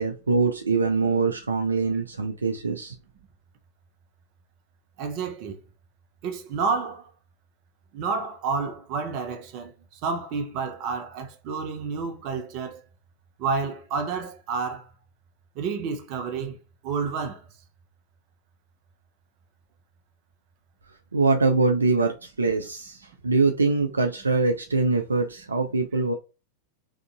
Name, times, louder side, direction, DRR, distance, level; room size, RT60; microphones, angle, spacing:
voice 1, 0.0-3.0 21.1-23.0 23.2-26.1, right 3 dB, 75° right, 0.4 m, -23 dB
voice 2, 5.0-5.6 6.2-7.1 7.9-12.8 13.4-14.9 15.6-16.6 16.8-17.4, right 5 dB, 40° right, 0.7 m, -30 dB
3.6 x 2.6 x 2.3 m
figure-of-eight pair, 90°, 0 cm